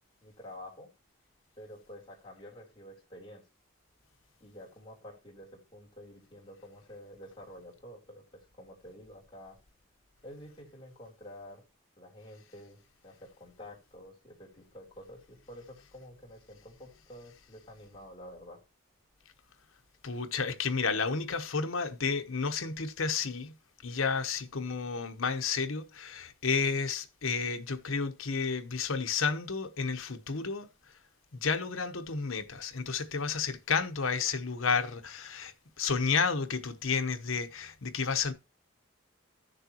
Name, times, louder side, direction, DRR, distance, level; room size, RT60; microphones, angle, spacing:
voice 1, 0.2-0.9 1.6-3.4 4.4-9.6 10.2-11.6 12.0-18.6, left 1 dB, 25° left, 3.3 m, -49 dB
voice 2, 20.0-23.5 23.8-30.7 31.3-38.3, left 5 dB, 80° left, 1.0 m, -31 dB
14.5 x 6.6 x 2.9 m
head